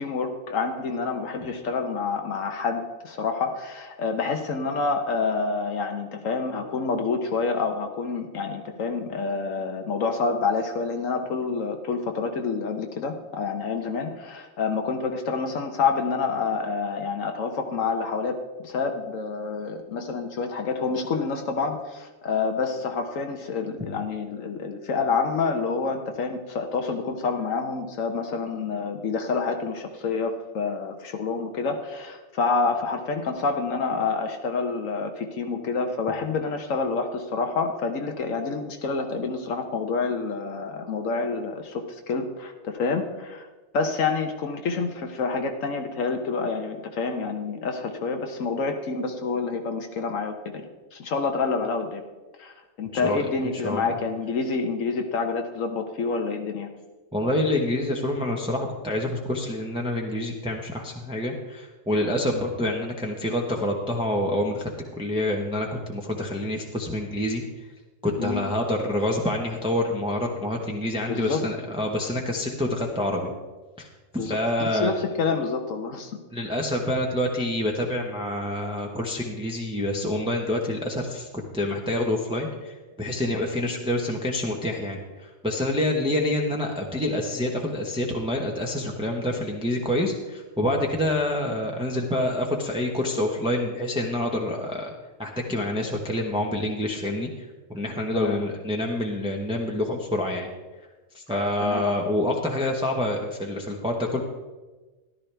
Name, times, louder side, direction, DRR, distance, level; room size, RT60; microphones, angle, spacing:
voice 1, 0.0-43.5 43.7-50.7 50.9-52.0 52.4-56.7 68.2-68.4 71.1-71.4 74.2-76.1 98.1-98.3 101.6-101.8, left 4 dB, 75° left, 4 dB, 1.3 m, -28 dB
voice 2, 53.6-53.9 57.1-64.7 65.0-67.4 68.0-73.3 73.8-73.9 74.1-74.9 76.3-81.3 81.5-94.9 95.2-100.5 101.1-104.2, left 1 dB, 5° right, 0 dB, 1.0 m, -27 dB
14.0 x 11.5 x 3.4 m, 1.2 s
omnidirectional pair, 1.4 m